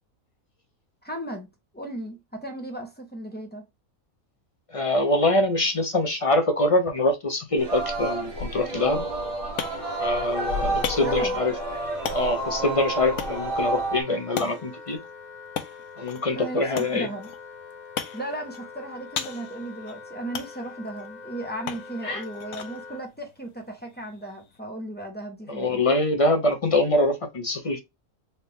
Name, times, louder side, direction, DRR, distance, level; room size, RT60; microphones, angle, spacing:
voice 1, 1.0-1.5 1.7-3.6 11.0-11.4 16.3-17.3 18.1-25.8, right 1 dB, 10° left, 1.0 m, -36 dB
voice 2, 4.7-9.0 10.0-11.5 12.1-15.0 16.0-17.1 22.0-22.2 25.5-27.8, left 2 dB, 35° left, 0.5 m, -24 dB
Singing, 7.6-14.0, right 2 dB, 60° right, 2.0 m, -29 dB
sound 1, 9.0-24.6, left 8 dB, 75° left, 1.1 m, -39 dB
Wind instrument woodwind instrument, 9.7-23.1, left 5 dB, 60° left, 1.6 m, -43 dB
4.1 x 2.8 x 3.5 m
omnidirectional pair, 1.5 m